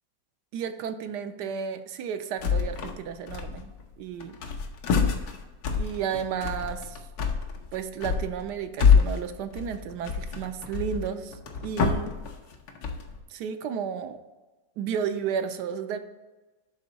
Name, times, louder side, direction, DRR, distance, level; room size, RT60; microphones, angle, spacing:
voice 1, 0.5-4.4 5.7-7.0 7.7-11.4 11.6-12.1 13.3-14.2 14.8-16.0, right 7 dB, 75° right, 9 dB, 1.1 m, -32 dB
sound 1, 2.4-3.0 3.3-3.9 4.2-13.2, left 6 dB, 80° left, 1.5 m, -26 dB
10.5 x 3.7 x 4.0 m, 1.2 s
omnidirectional pair, 1.9 m